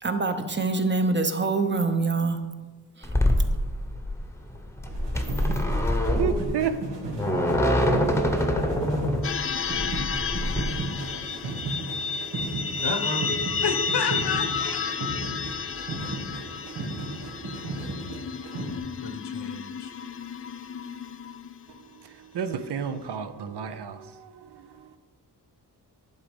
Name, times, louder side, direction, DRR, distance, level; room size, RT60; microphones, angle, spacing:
voice 1, 0.0-2.4 3.0-3.1, right 3 dB, 25° right, 7 dB, 0.7 m, -25 dB
sound 1, 3.0-10.6, left 1 dB, 5° left, 0.9 m, -25 dB
sound 2, 4.9-18.8, right 2 dB, 90° right, 1.6 m, -35 dB
voice 2, 5.8-6.8 21.7-25.0, right 7 dB, 70° right, 10 dB, 0.7 m, -32 dB
sound 3, 9.2-21.8, left 5 dB, 35° left, 0.4 m, -32 dB
voice 3, 12.8-13.3 13.6-14.8 19.0-19.9, left 5 dB, 70° left, 8 dB, 1.0 m, -31 dB
11.0 x 4.1 x 5.1 m, 1.3 s
wide cardioid pair, 95°, 42 cm